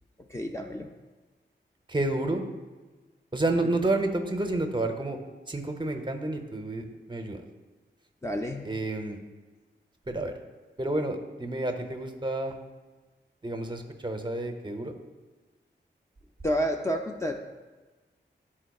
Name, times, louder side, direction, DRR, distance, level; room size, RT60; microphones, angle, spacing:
voice 1, 0.2-0.9 8.2-8.7 16.4-17.3, equal, 15° left, 2 dB, 0.4 m, -30 dB
voice 2, 1.9-2.4 3.3-5.2 5.5-7.4 8.6-9.2 10.1-10.4 10.8-12.5 13.4-14.9, right 2 dB, 25° right, 5 dB, 0.7 m, -30 dB
11.5 x 4.3 x 2.3 m, 1.3 s
wide cardioid pair, 95°, 19 cm